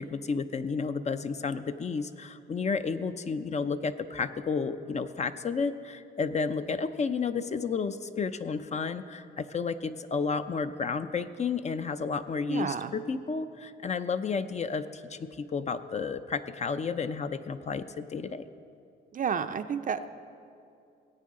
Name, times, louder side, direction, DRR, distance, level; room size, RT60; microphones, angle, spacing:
voice 1, 0.0-18.5, left 5 dB, 35° left, 10 dB, 0.5 m, -32 dB
voice 2, 12.5-12.9 19.1-20.1, right 7 dB, 45° right, 10 dB, 0.5 m, -31 dB
17.0 x 8.6 x 3.7 m, 2.6 s
cardioid pair, 75°, 20 cm